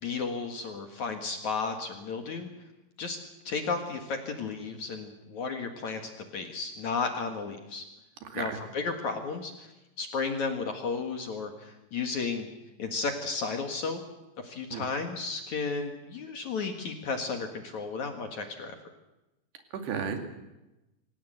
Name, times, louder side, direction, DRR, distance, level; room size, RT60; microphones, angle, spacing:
voice 1, 0.0-2.5 3.0-3.2 3.4-7.8 8.3-9.7 10.0-12.5 12.8-14.0 14.4-18.8, left 4 dB, 60° left, 5 dB, 2.0 m, -33 dB
voice 2, 8.2-8.6 14.7-14.9 19.7-20.2, right 6 dB, 60° right, 5 dB, 4.2 m, -33 dB
26.5 x 17.5 x 8.0 m, 1.0 s
omnidirectional pair, 6.0 m